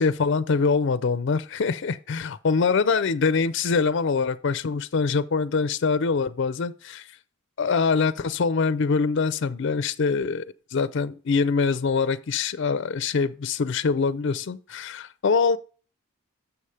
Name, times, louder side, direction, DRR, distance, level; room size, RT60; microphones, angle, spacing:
voice 1, 0.0-7.1 7.6-10.4 10.7-15.6, left 5 dB, 60° left, 0.4 m, -24 dB
7.0 x 5.7 x 4.8 m
head